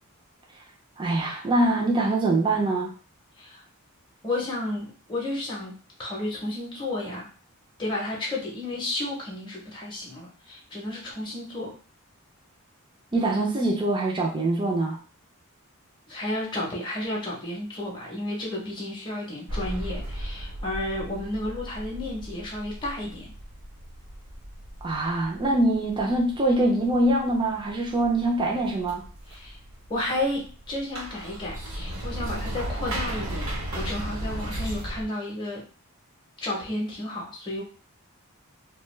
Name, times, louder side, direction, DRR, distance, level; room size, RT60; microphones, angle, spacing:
voice 1, 1.0-2.9 13.1-15.0 24.8-29.0, right 2 dB, 20° right, -1 dB, 0.5 m, -24 dB
voice 2, 4.2-7.3 7.8-11.7 16.1-23.3 29.3-29.6 29.9-35.7 36.4-37.6, left 1 dB, 20° left, -3 dB, 0.7 m, -32 dB
sound 1, 19.5-35.1, right 1 dB, 80° right, 0.9 m, -36 dB
2.3 x 2.2 x 3.1 m, 0.38 s
head